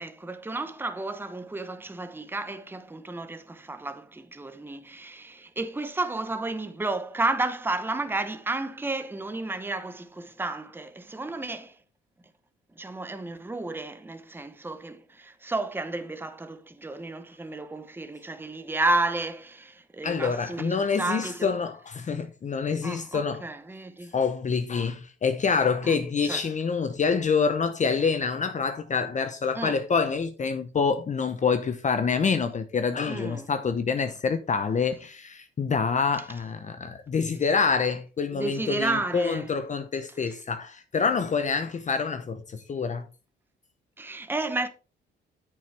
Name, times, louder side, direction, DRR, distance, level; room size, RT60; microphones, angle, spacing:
voice 1, 0.0-11.8 12.8-21.5 22.8-24.1 25.8-26.5 29.5-29.8 33.1-33.5 38.3-39.5 44.0-44.7, right 2 dB, 10° right, 0.9 m, -32 dB
voice 2, 20.0-23.4 24.1-43.1, left 5 dB, 40° left, 0.8 m, -26 dB
8.6 x 6.7 x 3.3 m
cardioid pair, 90°, 20 cm